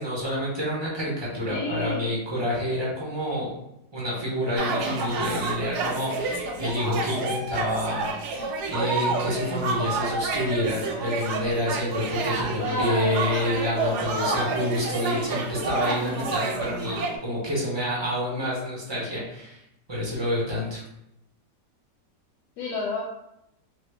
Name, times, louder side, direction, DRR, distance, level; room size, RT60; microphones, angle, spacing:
voice 1, 0.0-3.5 3.9-19.6 19.9-20.8, left 1 dB, 35° right, -6 dB, 0.4 m, -28 dB
voice 2, 1.5-2.2 12.6-13.4 22.6-23.0, left 3 dB, 85° left, -3 dB, 1.2 m, -30 dB
sound 1, 4.6-17.2, right 3 dB, 90° right, 1.2 m, -29 dB
2.9 x 2.4 x 3.2 m, 0.81 s
omnidirectional pair, 1.7 m